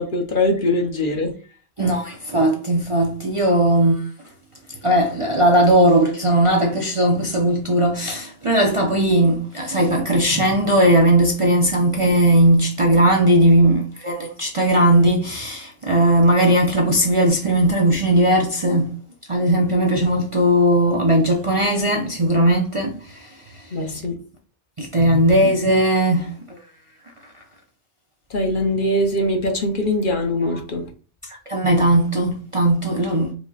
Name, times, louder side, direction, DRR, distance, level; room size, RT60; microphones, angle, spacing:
voice 1, 0.0-1.3 23.7-24.1 28.3-30.9, left 1 dB, 50° left, 0.9 m, -22 dB
voice 2, 1.8-4.0 4.8-18.9 19.3-23.3 24.8-26.3 30.4-30.5 31.5-33.3, right 1 dB, 35° right, 0.5 m, -18 dB
4.9 x 2.2 x 3.9 m
omnidirectional pair, 1.2 m